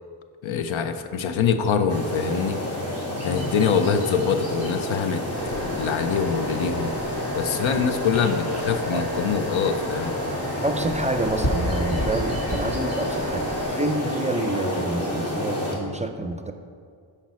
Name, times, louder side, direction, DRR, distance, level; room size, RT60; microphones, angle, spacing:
voice 1, 0.4-2.6 3.2-6.9 7.4-10.2, left 6 dB, 75° left, 9 dB, 0.7 m, -24 dB
sound 1, 1.9-15.7, left 1 dB, 30° left, 2.2 m, -30 dB
sound 2, 5.3-13.7, equal, 55° left, 2.1 m, -31 dB
voice 2, 10.6-16.5, right 2 dB, 15° right, 6 dB, 0.5 m, -28 dB
10.0 x 5.2 x 4.2 m, 2.2 s
cardioid pair, 70°, 47 cm